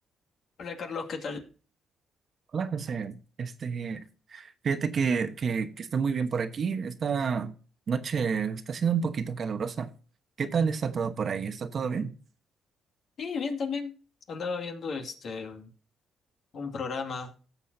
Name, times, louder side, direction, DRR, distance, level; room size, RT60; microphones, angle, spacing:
voice 1, 0.6-1.4 13.2-13.9 14.3-15.7 16.5-17.3, left 5 dB, 60° left, 2.3 m, -34 dB
voice 2, 2.5-4.0 4.3-7.5 7.9-9.9 10.4-12.1, right 6 dB, 50° right, 1.1 m, -29 dB
17.0 x 7.2 x 2.7 m
cardioid pair, 90°, 0 cm